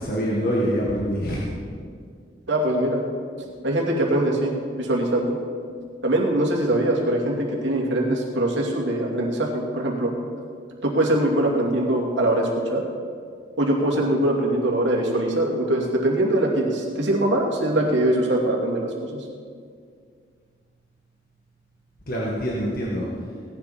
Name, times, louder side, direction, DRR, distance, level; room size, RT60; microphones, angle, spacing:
voice 1, 0.0-1.4 22.1-23.0, equal, 50° left, -4 dB, 1.9 m, -25 dB
voice 2, 2.5-3.0 3.6-5.4 6.0-10.1 10.8-12.8 13.6-19.2, right 1 dB, 85° right, -1 dB, 2.6 m, -22 dB
17.5 x 11.0 x 4.3 m, 2.1 s
head